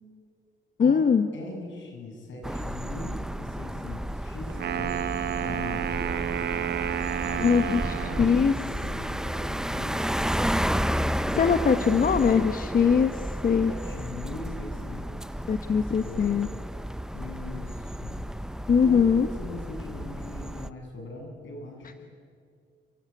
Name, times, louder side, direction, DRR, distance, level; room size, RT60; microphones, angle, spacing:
voice 1, 0.8-1.3 7.4-8.5 11.3-13.7 15.5-16.5 18.7-19.3, left 6 dB, 45° left, 8 dB, 1.2 m, -22 dB
voice 2, 1.3-5.0 5.3-6.2 7.2-10.2 13.7-16.4 17.1-18.2 18.8-22.1, left 3 dB, 75° left, 2 dB, 7.7 m, -41 dB
sound 1, 2.4-20.7, equal, 5° right, 0.7 m, -32 dB
Wind instrument woodwind instrument, 4.5-8.5, right 9 dB, 55° right, 0.8 m, -30 dB
29.5 x 16.5 x 9.8 m, 2.2 s
cardioid pair, 90°, 20 cm